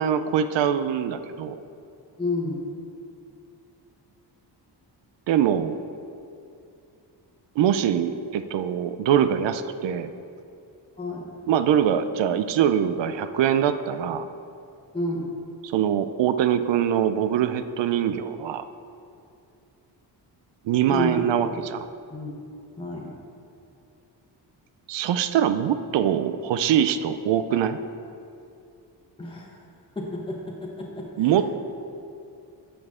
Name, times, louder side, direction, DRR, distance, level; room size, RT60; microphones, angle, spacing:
voice 1, 0.0-1.6 5.3-5.8 7.6-10.1 11.5-14.3 15.7-18.6 20.6-21.8 24.9-27.8 31.2-31.5, right 9 dB, 90° right, 10 dB, 0.5 m, -23 dB
voice 2, 2.2-2.7 11.0-11.3 14.9-15.3 20.9-21.5 22.1-22.4 22.8-23.1 29.2-29.5 29.9-31.3, left 2 dB, 10° left, -3 dB, 1.1 m, -30 dB
10.5 x 7.0 x 3.7 m, 2.6 s
wide cardioid pair, 150°, 42 cm